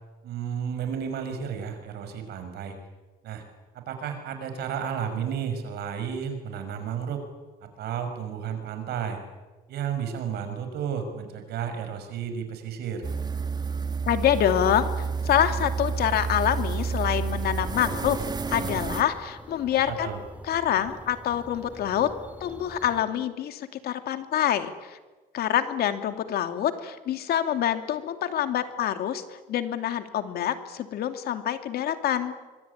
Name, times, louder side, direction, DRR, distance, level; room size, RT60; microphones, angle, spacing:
voice 1, 0.2-2.8 3.2-3.4 3.7-7.2 7.6-9.2 9.7-13.0 19.9-20.2, right 7 dB, 75° right, 7 dB, 6.2 m, -32 dB
sound 1, 13.0-19.0, right 5 dB, 25° right, 1.7 m, -30 dB
voice 2, 14.1-20.1 20.5-22.1 22.4-25.0 25.3-32.3, left 10 dB, 65° left, 8 dB, 2.7 m, -26 dB
sound 2, 17.6-23.0, right 1 dB, 10° right, 3.5 m, -46 dB
25.0 x 23.5 x 9.9 m, 1.2 s
cardioid pair, 110°, 17 cm